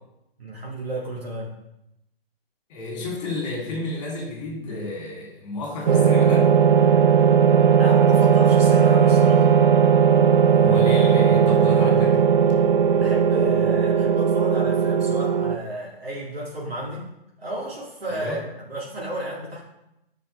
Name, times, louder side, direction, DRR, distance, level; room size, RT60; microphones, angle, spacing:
voice 1, 0.4-1.5 7.8-9.5 13.0-17.1 17.4-18.4 18.7-19.6, right 1 dB, 75° right, -5 dB, 2.4 m, -32 dB
voice 2, 2.7-6.5 10.5-12.2 18.1-18.4, left 2 dB, 30° left, -2 dB, 3.1 m, -31 dB
sound 1, 5.9-15.6, right 7 dB, 55° right, 0.5 m, -17 dB
10.0 x 5.4 x 3.4 m, 0.86 s
figure-of-eight pair, 140°, 30 cm